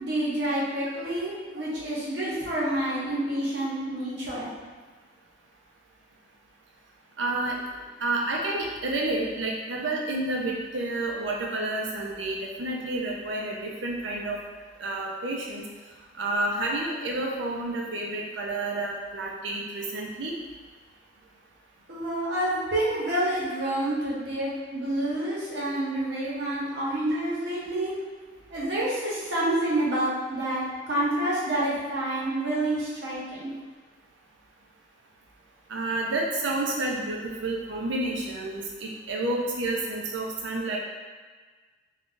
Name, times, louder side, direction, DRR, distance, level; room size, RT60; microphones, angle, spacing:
voice 1, 0.0-4.5 21.9-28.0 28.5-33.5, right 1 dB, 65° right, -7 dB, 0.9 m, -28 dB
voice 2, 7.2-7.6 8.0-14.4 14.8-15.7 16.1-20.3 35.7-40.8, right 2 dB, 85° right, -1 dB, 0.6 m, -30 dB
2.5 x 2.4 x 3.7 m, 1.4 s
head